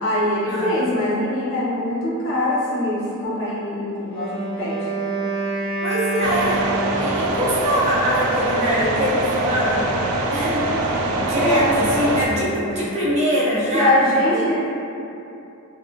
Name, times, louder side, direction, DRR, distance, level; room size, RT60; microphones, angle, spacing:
voice 1, 0.0-5.1 11.1-11.8 13.7-14.7, left 1 dB, 65° left, -9 dB, 0.8 m, -23 dB
Wind instrument woodwind instrument, 4.0-7.5, right 3 dB, 25° left, 0.8 m, -27 dB
voice 2, 5.8-6.7 7.0-9.9 10.3-14.5, equal, 30° right, -8 dB, 0.6 m, -23 dB
sound 1, 6.2-12.3, right 2 dB, 85° right, 0.3 m, -23 dB
2.6 x 2.3 x 2.5 m, 2.8 s
head